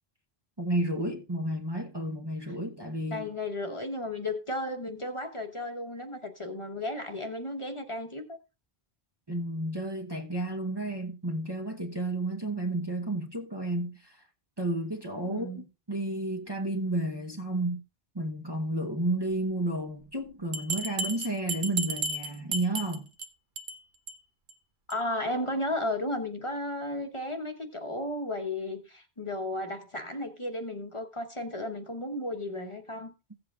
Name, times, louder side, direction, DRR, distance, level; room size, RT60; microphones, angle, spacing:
voice 1, 0.6-3.3 9.3-14.2 14.6-17.8 18.1-23.0, right 1 dB, 25° right, 0.9 m, -32 dB
voice 2, 3.1-8.4 15.2-15.7 24.9-33.1, left 1 dB, 30° left, 1.1 m, -34 dB
Bell, 20.5-23.3 23.6-23.8 24.1-24.2 24.5-24.6 24.9-25.0, right 3 dB, 55° right, 0.9 m, -33 dB
16.0 x 7.9 x 2.4 m
omnidirectional pair, 1.1 m